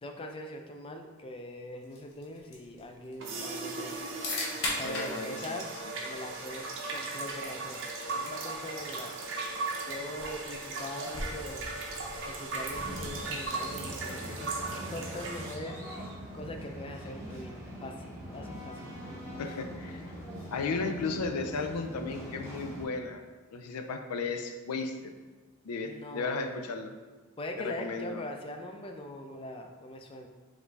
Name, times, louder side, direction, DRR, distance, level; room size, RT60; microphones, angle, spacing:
voice 1, 0.0-4.0 4.8-7.8 8.1-9.3 9.9-11.7 12.3-14.6 14.9-15.8 16.3-18.9 25.8-26.4 27.4-30.3, left 1 dB, 25° left, 3 dB, 0.3 m, -42 dB
sound 1, 1.8-13.8, left 2 dB, 65° left, 0.9 m, -42 dB
sound 2, 3.2-15.6, right 3 dB, 55° right, 0.6 m, -37 dB
voice 2, 4.8-5.9 19.4-20.1 20.5-23.2 23.5-25.1 25.6-26.9 27.6-28.2, left 4 dB, 85° left, 6 dB, 0.4 m, -35 dB
sound 3, 12.7-22.8, equal, 10° right, 0.7 m, -42 dB
5.0 x 2.6 x 3.3 m, 1.3 s
head